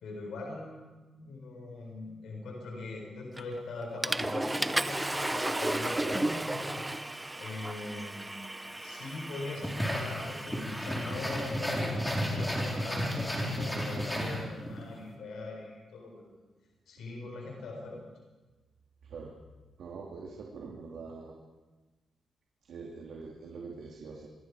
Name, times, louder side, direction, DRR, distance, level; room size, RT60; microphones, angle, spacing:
voice 1, 0.0-8.4 8.7-16.3 16.9-18.1, left 2 dB, 90° left, 0 dB, 4.6 m, -41 dB
Water / Toilet flush, 3.4-3.6 4.0-11.9, right 1 dB, 10° right, 0.7 m, -34 dB
sound 1, 9.6-14.8, equal, 5° left, 4.1 m, -33 dB
voice 2, 19.0-19.3 19.8-21.3 22.7-24.3, right 4 dB, 80° right, -1 dB, 2.7 m, -44 dB
26.0 x 21.0 x 4.9 m, 1.2 s
cardioid pair, 120°, 0 cm